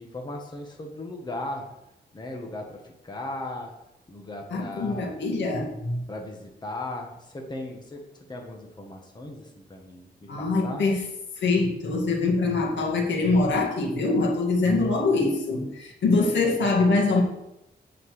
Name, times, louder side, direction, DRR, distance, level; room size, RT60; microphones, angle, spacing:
voice 1, 0.0-1.6 2.1-3.7 4.1-5.2 6.1-8.0 8.3-10.8, left 2 dB, 25° left, 1 dB, 1.5 m, -37 dB
voice 2, 4.5-6.0 10.3-11.0 11.4-17.2, left 3 dB, 85° left, -1 dB, 2.1 m, -24 dB
8.6 x 5.9 x 6.7 m, 0.88 s
wide cardioid pair, 150°, 18 cm